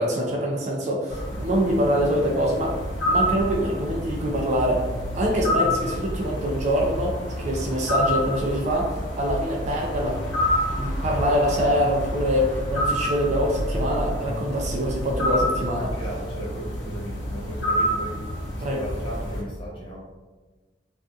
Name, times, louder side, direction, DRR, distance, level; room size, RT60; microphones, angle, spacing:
voice 1, 0.0-2.7 3.1-4.9 5.1-10.3 10.7-15.9 18.6-18.8, equal, 40° right, -1 dB, 0.4 m, -24 dB
sound 1, 1.1-19.4, equal, 90° left, 0.7 m, -28 dB
voice 2, 15.8-18.2 18.5-20.1, right 1 dB, 30° left, -4 dB, 0.6 m, -36 dB
2.5 x 2.4 x 2.3 m, 1.3 s
head